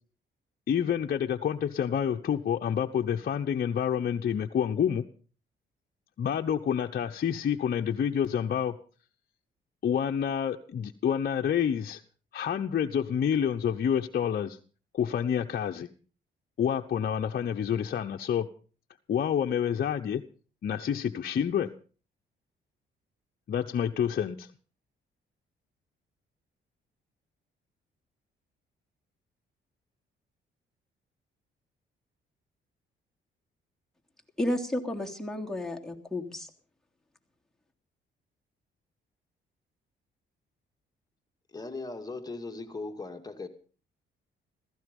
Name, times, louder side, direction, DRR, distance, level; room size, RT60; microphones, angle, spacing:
voice 1, 0.7-5.0 6.2-8.7 9.8-12.0 12.3-14.6 14.9-15.9 16.6-18.5 19.1-20.2 20.6-21.7 23.5-24.5, left 8 dB, 50° left, 3 dB, 1.0 m, -28 dB
voice 2, 34.4-36.5, left 1 dB, ahead, 0 dB, 3.1 m, -32 dB
voice 3, 41.5-43.5, left 3 dB, 20° left, 6 dB, 2.3 m, -38 dB
16.0 x 15.5 x 5.4 m, 0.39 s
cardioid pair, 90°, 20 cm